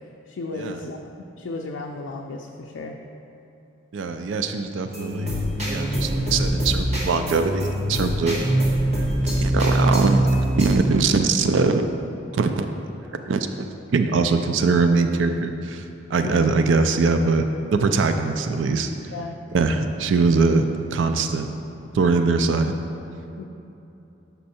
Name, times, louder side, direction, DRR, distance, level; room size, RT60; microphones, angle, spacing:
voice 1, 0.3-1.1 1.4-3.0 16.2-16.5 19.1-19.4 23.4-23.5, left 3 dB, 80° left, 0 dB, 0.4 m, -34 dB
voice 2, 3.9-8.4 9.2-10.2 10.6-11.8 12.3-12.7 13.3-15.8 16.1-17.4 17.7-18.9 19.5-20.6 20.9-21.5 21.9-22.7, right 4 dB, 75° right, 7 dB, 0.4 m, -22 dB
sound 1, 4.9-10.8, right 1 dB, 35° right, 1.4 m, -23 dB
6.2 x 5.6 x 4.2 m, 2.9 s
head